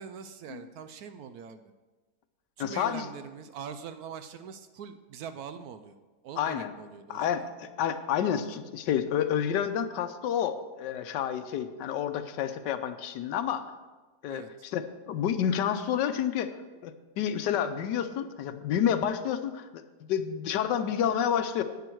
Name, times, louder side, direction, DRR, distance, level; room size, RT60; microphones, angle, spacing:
voice 1, 0.0-1.6 2.6-6.0 6.2-7.5 14.3-14.5, right 7 dB, 70° right, 10 dB, 1.0 m, -43 dB
voice 2, 2.6-3.1 6.4-6.7 7.1-13.7 14.2-16.6 16.8-19.8 20.1-21.6, left 9 dB, 80° left, 10 dB, 1.3 m, -29 dB
10.5 x 9.3 x 4.6 m, 1.3 s
omnidirectional pair, 1.9 m